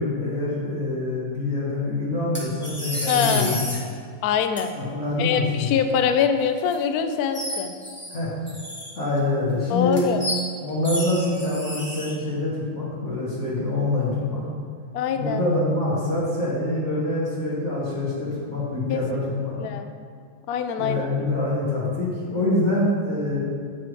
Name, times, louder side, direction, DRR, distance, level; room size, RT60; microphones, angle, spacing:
voice 1, 0.0-3.6 4.7-5.8 8.1-8.3 8.9-10.0 10.6-14.4 15.2-19.6 20.8-23.4, left 2 dB, 40° left, -7 dB, 1.5 m, -25 dB
sound 1, 2.3-3.8 4.6-4.7 6.6-6.7 7.3-8.2 8.5-9.2 9.9-10.4 10.8-12.1, left 1 dB, 10° left, 0.9 m, -31 dB
voice 2, 3.1-3.6 4.2-4.7 5.2-7.7 9.7-10.2 14.9-15.4 18.9-19.0 19.2-19.3 19.6-19.9 20.5-21.1, left 7 dB, 85° left, 8 dB, 0.8 m, -24 dB
8.1 x 5.1 x 4.6 m, 2.1 s
omnidirectional pair, 2.2 m